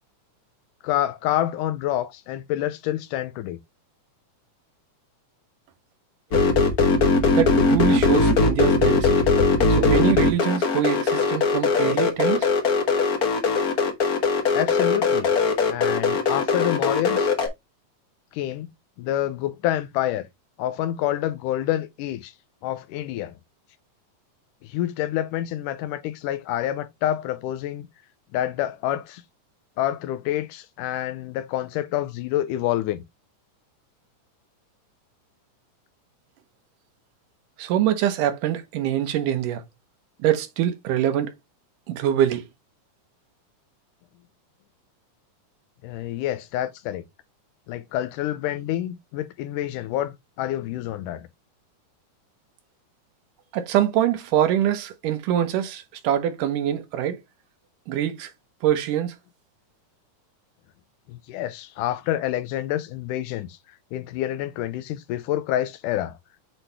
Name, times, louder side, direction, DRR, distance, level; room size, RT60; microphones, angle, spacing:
voice 1, 0.8-3.6 14.5-15.3 15.7-17.3 18.3-18.7 19.0-20.3 20.6-22.3 22.6-23.4 24.6-27.9 28.3-29.2 29.8-33.0 45.8-47.0 47.7-51.3 61.1-63.6 63.9-66.2, left 13 dB, 90° left, 2.3 m, -27 dB
sound 1, 6.3-17.5, left 4 dB, 60° left, 0.9 m, -20 dB
voice 2, 7.3-9.3 9.7-12.5 37.6-39.6 40.2-41.3 41.9-42.5 53.5-57.2 57.9-58.3 58.6-59.1, right 10 dB, 85° right, 2.6 m, -24 dB
7.8 x 4.1 x 3.3 m
omnidirectional pair, 3.6 m